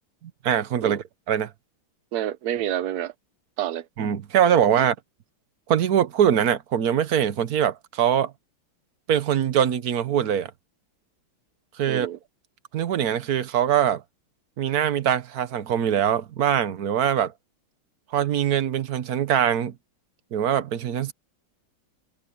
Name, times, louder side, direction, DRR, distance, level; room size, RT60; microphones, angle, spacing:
voice 1, 0.4-1.5 4.0-4.9 5.7-8.3 9.1-10.5 11.8-12.1 12.7-14.0 14.6-17.3 18.1-19.7 20.3-21.1, right 9 dB, 55° right, 1.2 m, -22 dB
voice 2, 2.1-3.1 3.6-3.9 4.8-4.9 11.9-12.2, right 12 dB, 70° right, 0.9 m, -28 dB
omnidirectional pair, 2.4 m